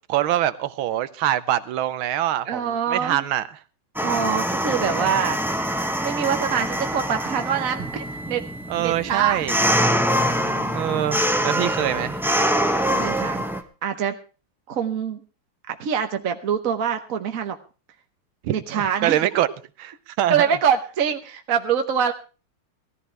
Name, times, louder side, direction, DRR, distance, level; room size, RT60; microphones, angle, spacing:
voice 1, 0.1-3.6 8.7-9.6 10.7-12.2 18.4-19.5 19.8-20.5, right 12 dB, 75° right, 1.6 m, -24 dB
voice 2, 2.4-3.2 4.0-5.4 6.0-8.5 8.8-9.4 10.4-11.0 12.6-13.4 13.8-14.2 14.7-15.2 15.7-17.6 18.5-19.2 20.3-22.1, right 8 dB, 50° right, 1.2 m, -25 dB
sound 1, 4.0-13.6, equal, ahead, 0.5 m, -24 dB
Wind instrument woodwind instrument, 4.7-10.7, right 7 dB, 20° left, 4.2 m, -42 dB
19.0 x 14.0 x 3.3 m
omnidirectional pair, 2.3 m